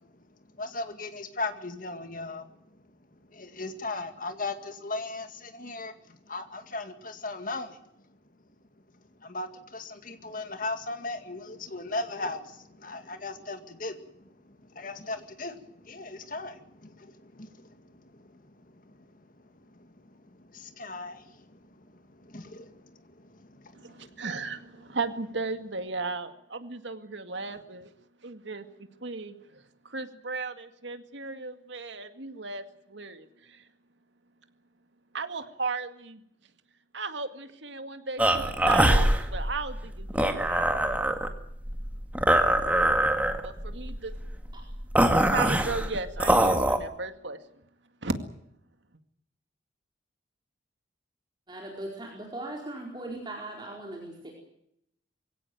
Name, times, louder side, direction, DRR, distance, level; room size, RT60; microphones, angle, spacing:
voice 1, 0.6-2.5 3.3-7.8 9.2-19.2 19.5-24.2, left 2 dB, 45° left, 8 dB, 2.1 m, -38 dB
voice 2, 23.7-27.9 28.2-33.7 35.1-36.2 36.9-41.2 43.4-44.1 45.0-47.4 48.0-48.1, right 3 dB, 75° right, 8 dB, 2.1 m, -36 dB
sound 1, 38.2-46.8, right 1 dB, 10° right, 1.9 m, -24 dB
voice 3, 51.5-54.3, right 1 dB, 25° right, -1 dB, 4.6 m, -39 dB
23.0 x 17.0 x 9.3 m, 0.76 s
head